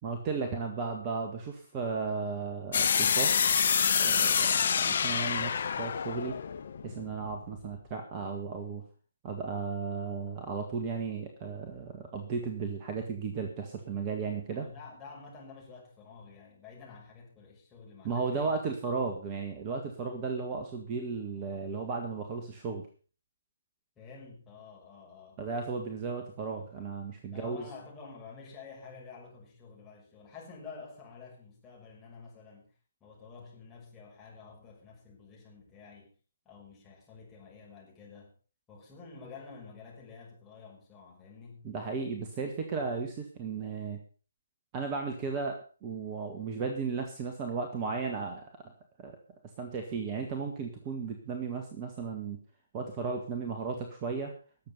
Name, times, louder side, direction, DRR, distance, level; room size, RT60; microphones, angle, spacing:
voice 1, 0.0-3.3 3.9-6.3 6.8-8.8 9.2-14.7 18.0-22.8 25.4-27.6 41.6-44.0 44.7-48.7 49.0-49.2 49.6-52.4 52.7-54.3, right 5 dB, 20° right, 4 dB, 1.8 m, -35 dB
sound 1, 2.7-7.6, left 7 dB, 45° left, 1.0 m, -27 dB
voice 2, 14.5-18.6 24.0-25.4 27.3-32.7 33.0-36.1 36.4-38.3 38.7-41.7, left 5 dB, 10° left, -4 dB, 5.9 m, -49 dB
19.5 x 7.7 x 5.6 m, 0.40 s
figure-of-eight pair, 140°, 0 cm